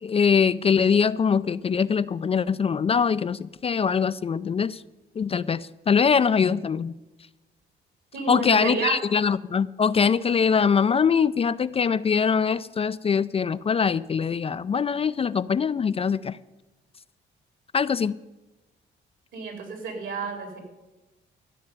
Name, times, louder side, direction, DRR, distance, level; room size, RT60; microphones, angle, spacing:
voice 1, 0.0-4.8 5.2-6.9 8.3-16.4 17.7-18.2, left 6 dB, 30° left, 15 dB, 0.3 m, -23 dB
voice 2, 8.1-9.0 19.3-20.6, right 4 dB, 75° right, 3 dB, 3.8 m, -30 dB
13.5 x 6.6 x 9.4 m, 1.1 s
cardioid pair, 90°, 20 cm